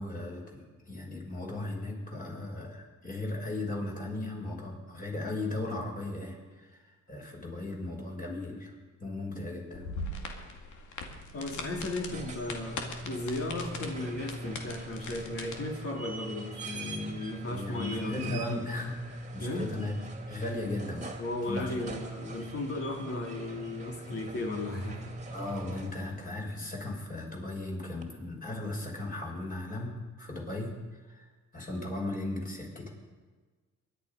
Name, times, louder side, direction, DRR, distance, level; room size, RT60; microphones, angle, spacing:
voice 1, 0.0-8.7 9.0-9.8 11.7-11.9 17.5-19.0 19.3-19.9 20.3-21.8 25.3-31.2 31.5-32.9, left 2 dB, 30° left, -1 dB, 5.7 m, -37 dB
sound 1, 9.7-15.5, left 3 dB, 75° left, 2.4 m, -41 dB
voice 2, 11.3-18.5 19.4-19.7 21.2-25.1, left 2 dB, 50° left, 1 dB, 3.4 m, -35 dB
sound 2, 11.9-26.3 28.0-28.1, right 2 dB, 25° right, 2.4 m, -42 dB
23.0 x 11.0 x 5.3 m, 1.4 s
cardioid pair, 90°, 30 cm